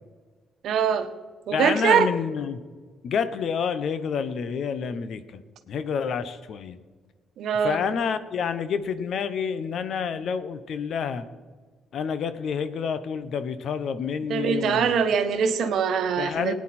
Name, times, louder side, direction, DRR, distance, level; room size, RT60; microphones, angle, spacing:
voice 1, 0.6-1.1 1.5-2.1 7.4-7.8 14.2-16.5, right 7 dB, 75° right, 8 dB, 1.1 m, -23 dB
voice 2, 1.5-2.6 3.0-5.4 5.7-6.8 7.6-11.3 11.9-14.9 16.2-16.5, left 6 dB, 65° left, 12 dB, 0.9 m, -28 dB
18.0 x 9.6 x 4.3 m, 1.4 s
cardioid pair, 90°, 0 cm